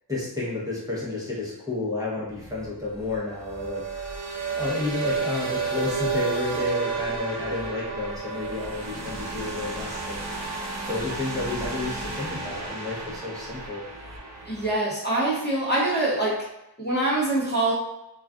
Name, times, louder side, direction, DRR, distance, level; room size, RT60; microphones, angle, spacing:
voice 1, 0.1-4.1 4.5-10.5 10.9-13.8, left 2 dB, 10° right, -7 dB, 0.8 m, -31 dB
sound 1, 2.3-14.8, right 4 dB, 40° right, 0.5 m, -32 dB
voice 2, 14.5-16.4 16.8-17.7, right 2 dB, 25° left, -6 dB, 0.8 m, -24 dB
2.3 x 2.3 x 3.4 m, 0.88 s
wide cardioid pair, 100°, 43 cm